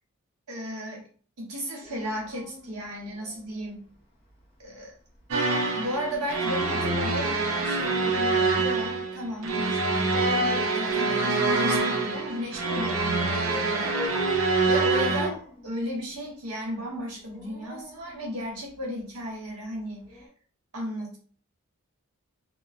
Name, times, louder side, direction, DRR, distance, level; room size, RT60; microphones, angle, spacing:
voice 1, 0.5-1.0 1.4-3.8 4.6-4.9 5.7-9.8 10.7-14.0 14.3-14.4 14.6-15.4 15.6-20.3 20.7-21.2, equal, 85° right, -1 dB, 1.0 m, -34 dB
Dog, 1.8-3.7 6.1-8.5 9.8-11.5 12.6-16.2 17.1-18.8 20.1-20.3, left 2 dB, 25° left, 1.3 m, -40 dB
sound 1, 5.3-15.3, right 3 dB, 65° right, 0.4 m, -25 dB
2.9 x 2.0 x 2.4 m, 0.42 s
head